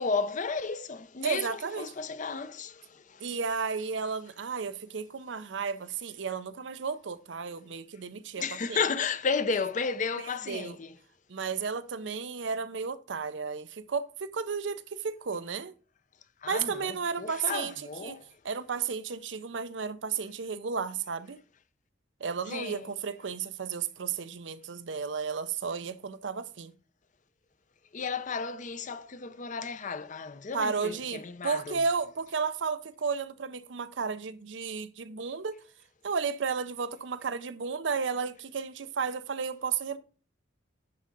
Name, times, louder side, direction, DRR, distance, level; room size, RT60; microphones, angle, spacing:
voice 1, 0.0-3.4 8.4-11.0 16.4-18.4 22.5-22.9 27.9-31.8, left 5 dB, 45° left, 0.6 m, -33 dB
voice 2, 1.2-1.9 3.2-8.4 8.7-8.8 10.5-10.8 11.3-15.7 16.5-17.7 18.0-18.2 18.4-21.4 22.2-26.7 30.5-35.6 36.0-40.0, right 5 dB, 75° right, 0.6 m, -33 dB
10.5 x 3.8 x 5.2 m
head